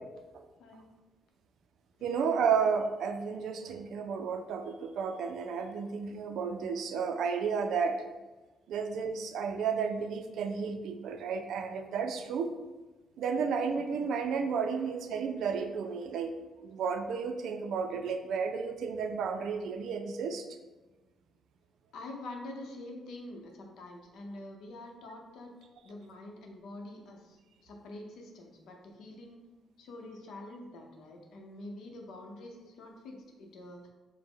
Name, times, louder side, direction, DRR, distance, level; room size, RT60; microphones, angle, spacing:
voice 1, 2.0-8.0 8.7-12.5 13.2-16.3 16.6-20.4, right 6 dB, 70° right, 7 dB, 0.3 m, -32 dB
voice 2, 21.9-25.5 25.8-29.4 29.8-33.8, left 2 dB, 75° left, 2 dB, 0.7 m, -46 dB
4.9 x 2.1 x 3.7 m, 1.2 s
cardioid pair, 160°, 0 cm